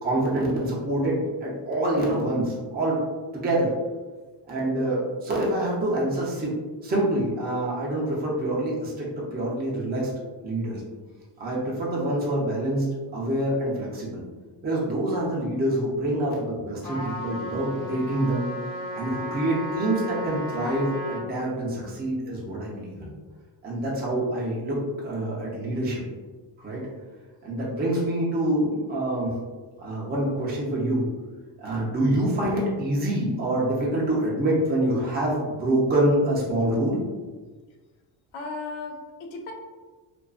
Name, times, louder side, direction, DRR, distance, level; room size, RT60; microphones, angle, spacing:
voice 1, 0.0-3.0 3.3-3.7 4.5-6.5 6.8-10.1 10.4-10.8 11.4-12.9 13.1-14.2 14.6-18.5 18.9-23.1 23.6-26.0 26.6-26.8 27.4-29.4 29.8-31.1 31.6-37.0, right 1 dB, 20° right, -5 dB, 0.5 m, -26 dB
voice 2, 10.8-11.2 38.3-39.5, left 3 dB, 85° left, 2 dB, 0.6 m, -37 dB
Trumpet, 16.8-21.3, left 1 dB, 45° left, 1.1 m, -34 dB
2.4 x 2.3 x 2.3 m, 1.3 s
cardioid pair, 120°, 47 cm